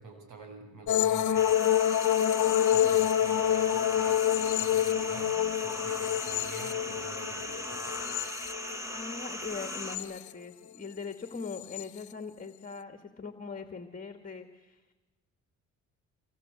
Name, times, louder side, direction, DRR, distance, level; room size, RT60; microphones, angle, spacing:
voice 1, 0.0-1.6 2.7-8.2, right 3 dB, 85° right, 5 dB, 7.5 m, -47 dB
sound 1, 0.9-9.0 9.5-10.3 11.5-11.8, left 11 dB, 70° left, 1.2 m, -27 dB
sound 2, 1.3-10.0, left 1 dB, 10° right, 4.0 m, -38 dB
voice 2, 8.9-14.8, left 5 dB, 30° left, 8 dB, 2.4 m, -41 dB
25.5 x 23.5 x 8.6 m, 1.1 s
cardioid pair, 90°, 30 cm